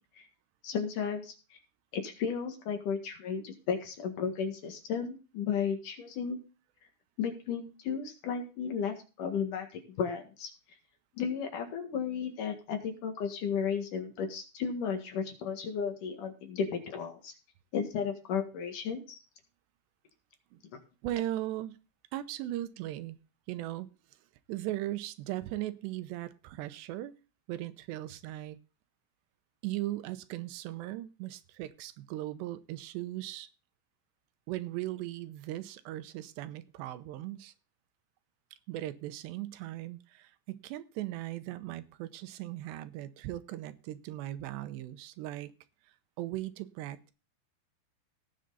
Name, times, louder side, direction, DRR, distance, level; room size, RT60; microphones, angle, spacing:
voice 1, 0.6-1.3 1.9-6.4 7.2-10.5 11.2-17.3 17.7-19.2, left 6 dB, 55° left, 5 dB, 3.0 m, -34 dB
voice 2, 21.0-21.8 22.1-23.2 23.5-23.9 24.5-27.1 27.5-28.6 29.6-33.5 34.5-37.5 38.7-45.5 46.2-47.1, right 14 dB, 85° right, 13 dB, 3.0 m, -38 dB
18.0 x 6.5 x 4.0 m, 0.32 s
omnidirectional pair, 4.8 m